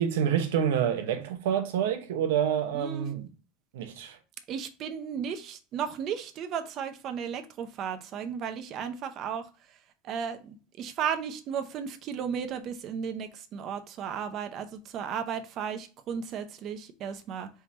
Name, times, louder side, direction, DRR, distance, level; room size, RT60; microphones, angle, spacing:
voice 1, 0.0-3.3 3.7-4.2, right 9 dB, 85° right, 0.9 m, -27 dB
voice 2, 2.7-3.1 4.5-9.5 10.0-17.5, right 7 dB, 35° right, 0.6 m, -34 dB
4.5 x 3.6 x 2.7 m
supercardioid pair, 165°, 0 cm